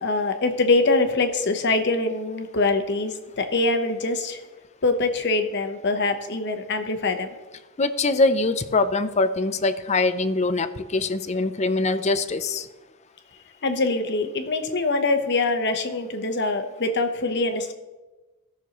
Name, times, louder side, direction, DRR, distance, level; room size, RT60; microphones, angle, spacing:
voice 1, 0.0-4.4 4.8-7.3 13.6-17.7, left 3 dB, 50° left, 7 dB, 1.0 m, -24 dB
voice 2, 7.8-12.7, left 3 dB, 30° left, 12 dB, 0.5 m, -23 dB
17.5 x 6.5 x 3.0 m, 1.2 s
head